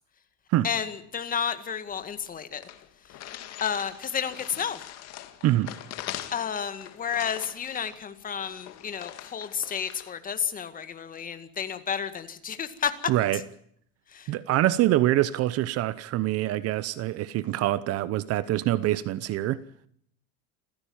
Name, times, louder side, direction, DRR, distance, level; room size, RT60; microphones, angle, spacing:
voice 1, 0.6-2.6 3.6-4.8 6.3-12.9 14.1-14.3, left 7 dB, 25° left, 1.9 m, -31 dB
sound 1, 1.9-2.0 2.2-2.3 2.6-10.1, left 12 dB, 45° left, 2.3 m, -42 dB
voice 2, 5.4-5.7 13.1-13.4 14.3-19.6, right 14 dB, 40° right, 0.9 m, -25 dB
28.0 x 15.5 x 8.8 m
cardioid pair, 150°, 36 cm